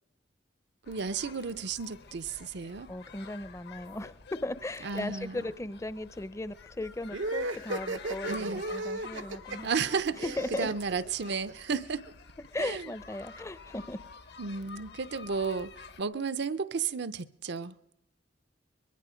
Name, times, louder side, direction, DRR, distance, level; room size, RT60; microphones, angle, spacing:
sound 1, 0.8-16.0, left 5 dB, 60° left, 1.0 m, -49 dB
voice 1, 0.9-2.9 4.8-5.4 8.3-8.6 9.6-12.1 12.6-12.9 14.4-17.7, right 5 dB, 60° right, 0.7 m, -33 dB
voice 2, 2.9-9.7 10.2-10.7 12.5-14.0, left 1 dB, 15° left, 0.6 m, -37 dB
sound 2, 7.1-11.7, right 2 dB, 85° right, 1.1 m, -35 dB
24.0 x 21.0 x 5.1 m
head